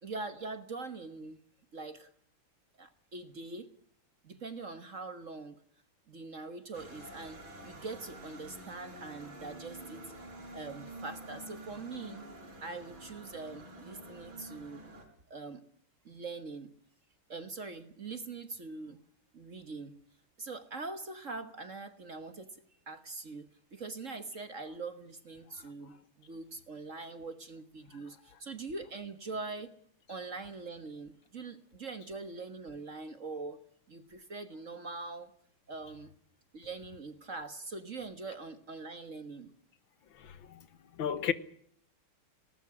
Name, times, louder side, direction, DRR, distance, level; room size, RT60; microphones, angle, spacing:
voice 1, 0.0-1.4 1.7-2.1 2.8-3.7 4.2-5.6 6.1-10.1 10.5-12.2 12.6-14.8 15.3-15.6 16.0-16.7 17.3-19.0 19.3-19.9 20.4-29.7 30.1-33.6 33.9-35.3 35.7-36.1 36.5-39.5, right 3 dB, 40° right, 1.5 m, -43 dB
sound 1, 6.7-15.0, right 1 dB, 60° right, 5.9 m, -48 dB
voice 2, 40.1-40.7 40.9-41.3, left 8 dB, 65° left, 1.8 m, -34 dB
19.5 x 18.5 x 9.9 m
omnidirectional pair, 2.4 m